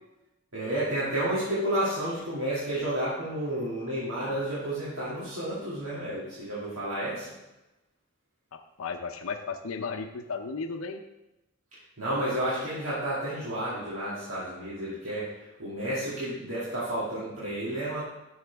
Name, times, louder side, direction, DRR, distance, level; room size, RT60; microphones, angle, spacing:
voice 1, 0.5-7.3 12.0-18.1, right 1 dB, 90° right, -9 dB, 2.4 m, -31 dB
voice 2, 8.5-11.0, left 4 dB, 85° left, 7 dB, 0.6 m, -35 dB
11.0 x 6.4 x 3.4 m, 1.0 s
head